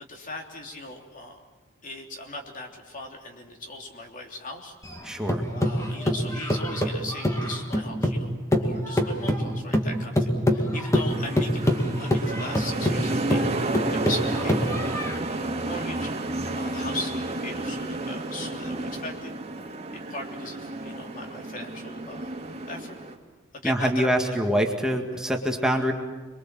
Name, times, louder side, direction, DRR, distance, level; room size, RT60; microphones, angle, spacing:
voice 1, 0.0-1.4 1.8-4.7 5.5-8.3 8.6-19.4 19.9-22.3 22.7-22.9 23.5-24.4 25.1-25.2, left 2 dB, 40° left, 2 dB, 3.3 m, -39 dB
sound 1, 4.8-8.2 8.5-15.2, equal, 15° left, 2.3 m, -25 dB
voice 2, 5.0-5.5 23.6-25.9, equal, 5° right, 2 dB, 1.9 m, -25 dB
sound 2, 11.1-23.1, right 2 dB, 30° right, 2.3 m, -31 dB
27.5 x 23.0 x 7.5 m, 1.3 s
head